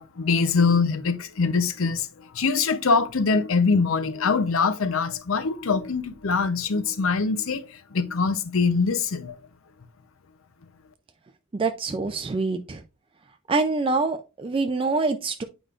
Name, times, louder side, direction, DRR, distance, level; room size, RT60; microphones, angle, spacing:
voice 1, 0.0-9.4, left 4 dB, 70° left, 0.7 m, -23 dB
voice 2, 11.5-12.8 13.5-15.4, right 3 dB, 25° right, 0.4 m, -25 dB
8.7 x 4.9 x 2.4 m
head